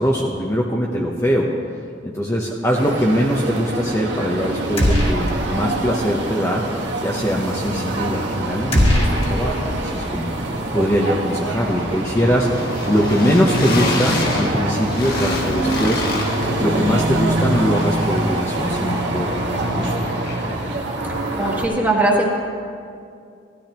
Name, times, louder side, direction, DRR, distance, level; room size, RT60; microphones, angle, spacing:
voice 1, 0.0-1.5 2.0-6.6 7.0-10.4 10.7-16.0 16.6-19.3 19.7-19.9, equal, 15° left, -2 dB, 0.8 m, -21 dB
sound 1, 2.7-21.7, right 2 dB, 70° right, 1.4 m, -25 dB
sound 2, 4.8-5.7 5.9-6.1 8.7-10.0, equal, 30° left, 1.8 m, -19 dB
sound 3, 7.9-8.2 8.5-20.7, left 1 dB, 55° left, 1.6 m, -29 dB
voice 2, 21.4-22.3, right 2 dB, 10° right, -3 dB, 1.7 m, -19 dB
17.0 x 13.5 x 2.9 m, 2.4 s
head